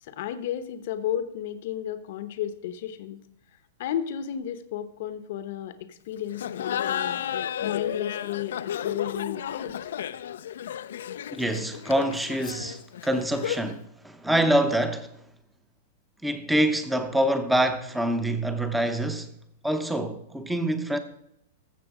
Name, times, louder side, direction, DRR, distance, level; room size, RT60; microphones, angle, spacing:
voice 1, 0.0-3.2 3.8-7.2 7.6-9.7, left 10 dB, 50° left, 0.9 m, -33 dB
Laughter, 6.3-13.8, left 10 dB, 70° left, 0.5 m, -32 dB
voice 2, 11.3-15.1 16.2-19.3 19.6-21.0, right 1 dB, 5° right, 0.8 m, -25 dB
14.5 x 6.8 x 4.9 m
supercardioid pair, 170°, 0 cm